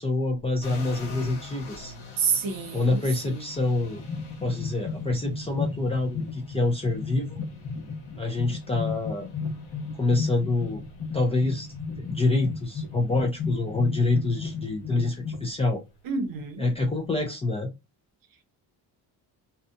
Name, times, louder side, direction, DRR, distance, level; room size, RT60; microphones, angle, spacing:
voice 1, 0.0-1.9 2.7-4.0 4.4-7.4 8.2-9.3 10.0-10.8 11.1-11.7 12.0-15.8 16.6-17.7, left 2 dB, 15° left, 0.3 m, -26 dB
sound 1, 0.6-17.1, left 1 dB, 75° left, 1.3 m, -47 dB
voice 2, 2.2-3.4 16.0-16.7, right 5 dB, 60° right, 0.7 m, -29 dB
sound 2, 3.8-15.5, left 4 dB, 50° left, 0.9 m, -34 dB
2.6 x 2.2 x 2.4 m
cardioid pair, 180°, 39 cm